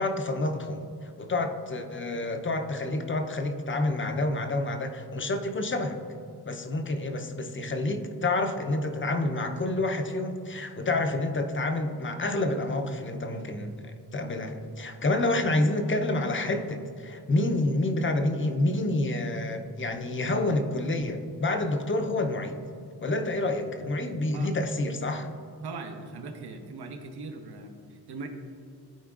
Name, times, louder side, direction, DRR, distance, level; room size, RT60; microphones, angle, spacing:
voice 1, 0.0-6.0 6.5-22.6 23.0-25.3, left 2 dB, 30° left, 6 dB, 0.6 m, -28 dB
voice 2, 25.6-28.3, right 3 dB, 75° right, 5 dB, 0.8 m, -40 dB
13.0 x 4.4 x 2.4 m, 2.5 s
cardioid pair, 90°, 39 cm